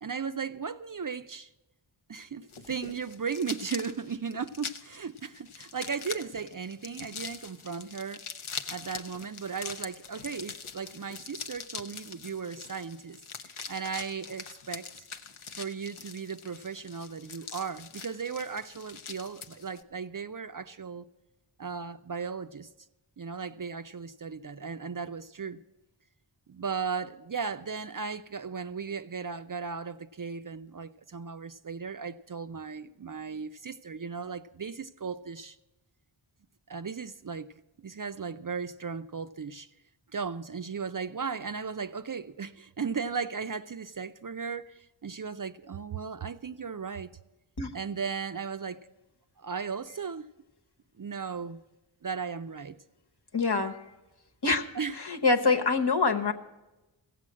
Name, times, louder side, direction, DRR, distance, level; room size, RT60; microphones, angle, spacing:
voice 1, 0.0-1.5 2.1-8.2 8.7-13.2 13.7-15.0 15.6-21.1 21.6-22.7 23.2-25.6 26.5-35.6 36.7-37.5 37.8-39.7 40.1-47.1 47.7-48.9 49.4-50.3 51.0-51.6 52.0-52.8 54.7-55.0, right 5 dB, 45° right, 0.5 m, -36 dB
sound 1, 2.5-19.8, left 5 dB, 80° left, 0.8 m, -43 dB
voice 2, 53.3-53.8 54.4-54.6 55.0-56.3, left 4 dB, 55° left, 1.1 m, -25 dB
15.5 x 7.7 x 7.3 m
wide cardioid pair, 40°, 49 cm